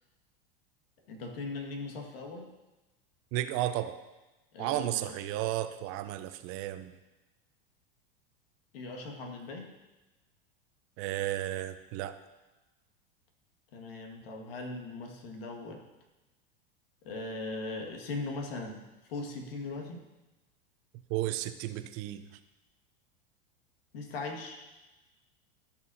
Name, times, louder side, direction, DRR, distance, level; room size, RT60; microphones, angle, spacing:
voice 1, 1.0-2.5 4.5-5.1 8.7-9.7 13.7-15.8 17.0-20.1 23.9-24.6, left 3 dB, 75° left, 2 dB, 1.8 m, -39 dB
voice 2, 3.3-4.0 4.6-6.9 11.0-12.2 21.1-22.2, right 14 dB, 50° right, 10 dB, 0.7 m, -33 dB
14.5 x 6.1 x 2.7 m, 1.1 s
hypercardioid pair, 100°, 29 cm